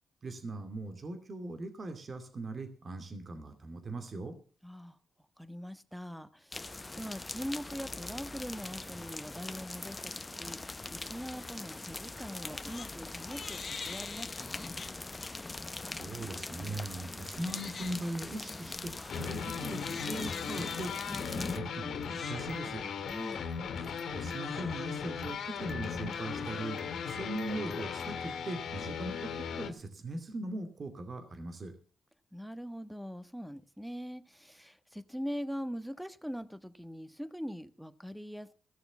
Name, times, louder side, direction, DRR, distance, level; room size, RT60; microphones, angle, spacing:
voice 1, 0.2-4.4 15.8-22.8 24.1-31.7, right 2 dB, 50° right, 8 dB, 2.5 m, -40 dB
voice 2, 4.6-5.0 5.4-14.7 23.1-23.4 32.3-38.5, equal, ahead, 13 dB, 1.3 m, -42 dB
sound 1, 6.5-21.6, left 2 dB, 25° left, 0.7 m, -42 dB
Crying sobbing, 12.3-12.9 13.3-15.3 15.8-16.1 16.6-28.5, left 5 dB, 50° left, 1.1 m, -47 dB
sound 2, 19.1-29.7, left 6 dB, 80° left, 2.0 m, -38 dB
15.5 x 6.7 x 7.2 m, 0.42 s
cardioid pair, 65°, 0 cm